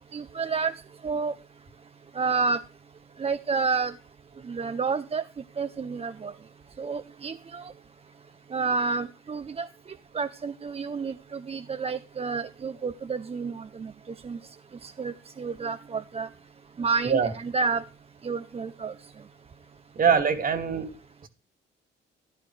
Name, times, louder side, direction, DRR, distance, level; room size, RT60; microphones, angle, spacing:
voice 1, 0.1-1.3 2.1-2.6 3.2-3.9 4.4-5.2 5.6-6.3 6.8-7.7 8.5-9.7 10.1-13.9 14.2-14.4 14.8-16.3 16.8-17.8 18.2-18.9, right 4 dB, 30° right, 12 dB, 0.7 m, -30 dB
voice 2, 20.0-20.9 21.2-21.3, right 6 dB, 45° right, 8 dB, 2.4 m, -23 dB
14.5 x 11.0 x 3.3 m, 0.34 s
cardioid pair, 90°, 20 cm